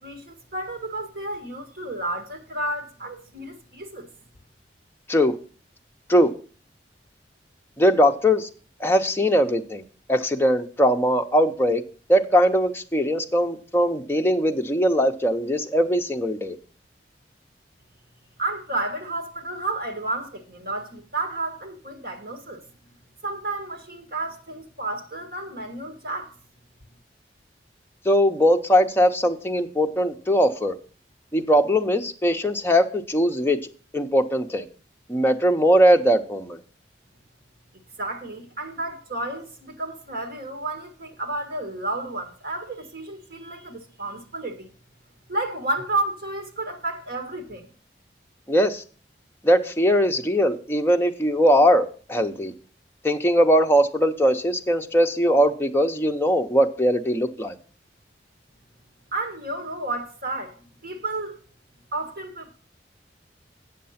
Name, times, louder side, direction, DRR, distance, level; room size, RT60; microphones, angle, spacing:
voice 1, 0.0-4.1 18.4-22.6 23.2-26.3 38.0-44.7 45.3-47.7 59.1-61.4 61.9-62.6, right 2 dB, 55° right, 1.7 m, -31 dB
voice 2, 7.8-8.5 8.8-9.8 10.1-11.8 12.1-16.6 28.1-30.7 31.3-33.6 33.9-34.7 35.1-36.6 48.5-48.8 49.4-52.5 53.0-57.6, equal, 15° left, 0.7 m, -20 dB
8.6 x 6.7 x 5.7 m
head